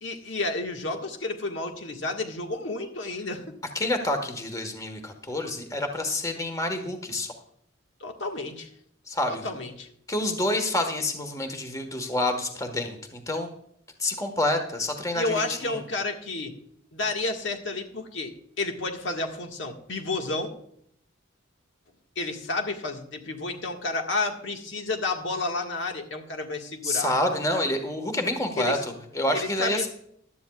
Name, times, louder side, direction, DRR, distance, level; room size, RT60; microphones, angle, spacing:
voice 1, 0.0-3.5 8.0-8.7 9.3-9.9 15.1-16.5 16.9-18.3 18.6-20.5 22.2-27.1 28.6-28.8 29.3-29.9, left 2 dB, 65° left, 3 dB, 1.7 m, -31 dB
voice 2, 3.7-7.3 9.1-9.5 10.1-13.5 14.0-15.8 26.8-29.9, left 1 dB, 15° left, 5 dB, 1.4 m, -28 dB
16.0 x 12.0 x 2.4 m, 0.69 s
head